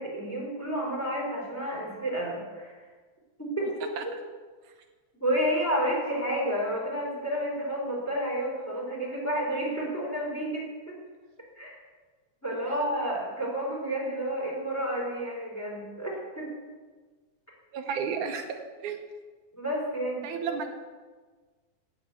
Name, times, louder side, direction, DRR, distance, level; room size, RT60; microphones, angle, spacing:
voice 1, 0.0-2.7 3.4-4.1 5.2-11.0 11.6-11.8 12.4-16.5 19.6-20.6, equal, 5° left, -3 dB, 4.3 m, -30 dB
voice 2, 17.7-19.0 20.2-20.7, right 6 dB, 80° right, 5 dB, 2.4 m, -32 dB
16.5 x 7.0 x 8.3 m, 1.4 s
omnidirectional pair, 3.5 m